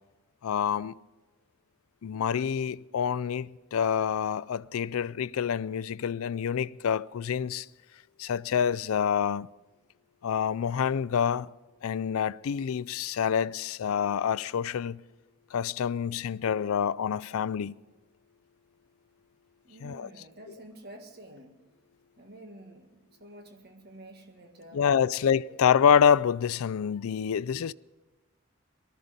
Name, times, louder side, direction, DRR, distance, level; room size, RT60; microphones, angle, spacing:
voice 1, 0.4-0.9 2.0-7.7 8.2-9.5 10.2-11.5 11.8-15.0 15.5-17.7 19.8-20.1 24.7-27.7, left 7 dB, 85° left, 0.4 m, -27 dB
voice 2, 19.6-21.5 22.2-25.6, right 1 dB, 45° right, 1.8 m, -49 dB
19.0 x 14.0 x 5.2 m
head